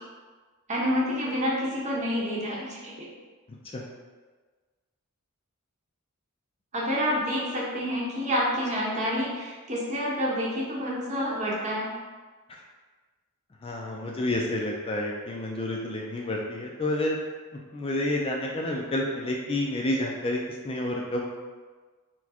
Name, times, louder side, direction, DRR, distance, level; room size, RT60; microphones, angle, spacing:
voice 1, 0.7-3.1 6.7-11.9, equal, 35° right, -4 dB, 1.0 m, -28 dB
voice 2, 13.6-17.2 17.7-21.2, left 1 dB, 25° left, -1 dB, 0.4 m, -29 dB
4.5 x 2.2 x 4.2 m, 1.4 s
head